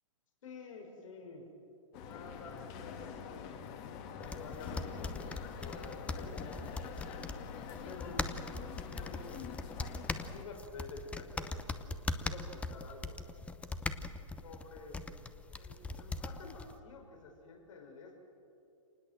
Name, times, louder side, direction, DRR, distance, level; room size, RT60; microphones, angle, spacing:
voice 1, 0.4-1.5 1.9-3.7 4.1-6.6 7.8-8.7 9.0-9.5 10.3-13.2 14.4-15.0 15.5-18.2, left 3 dB, 70° left, 2 dB, 5.8 m, -50 dB
sound 1, 1.9-10.4, left 7 dB, 35° left, 2.2 m, -45 dB
sound 2, 4.2-16.8, left 3 dB, 5° left, 0.8 m, -41 dB
27.0 x 20.0 x 7.7 m, 2.8 s
hypercardioid pair, 135°, 17 cm